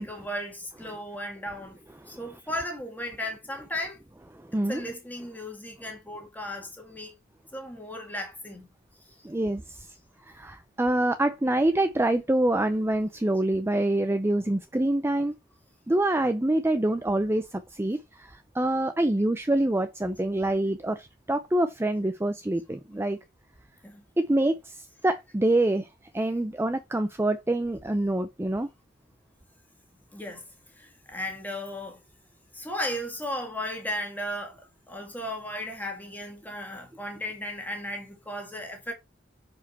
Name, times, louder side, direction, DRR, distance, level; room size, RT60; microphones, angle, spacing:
voice 1, 0.0-1.8 2.1-4.0 4.7-7.1 7.5-8.7 23.8-24.0 30.1-30.4 30.8-32.0 32.5-38.9, left 1 dB, 10° left, 2.0 m, -35 dB
voice 2, 4.5-4.8 9.2-9.9 10.3-15.3 15.9-23.2 24.2-25.9 26.1-28.7, right 1 dB, 15° right, 0.5 m, -26 dB
6.4 x 5.0 x 4.2 m
head